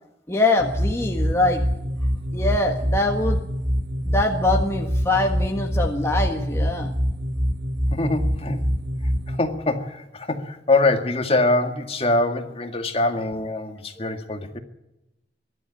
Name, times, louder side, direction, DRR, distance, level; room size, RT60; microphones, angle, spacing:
voice 1, 0.3-1.6 2.3-3.4 4.0-6.9, left 2 dB, 15° left, 1 dB, 1.6 m, -23 dB
sound 1, 0.6-9.4, equal, 75° right, 2.8 m, -25 dB
voice 2, 7.9-8.6 9.3-14.6, left 2 dB, 30° left, 6 dB, 2.0 m, -23 dB
23.0 x 13.0 x 9.9 m, 0.92 s
head